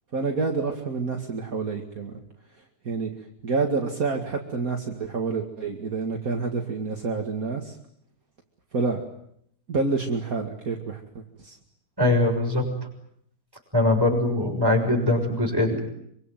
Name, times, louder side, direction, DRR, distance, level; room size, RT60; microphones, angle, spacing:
voice 1, 0.1-2.1 2.8-3.1 3.4-7.7 8.7-9.0 9.7-11.6, right 4 dB, 30° right, 2 dB, 1.6 m, -28 dB
voice 2, 12.0-12.7 13.7-15.8, left 2 dB, 5° right, 1 dB, 6.5 m, -22 dB
25.5 x 25.0 x 9.2 m, 0.72 s
omnidirectional pair, 4.4 m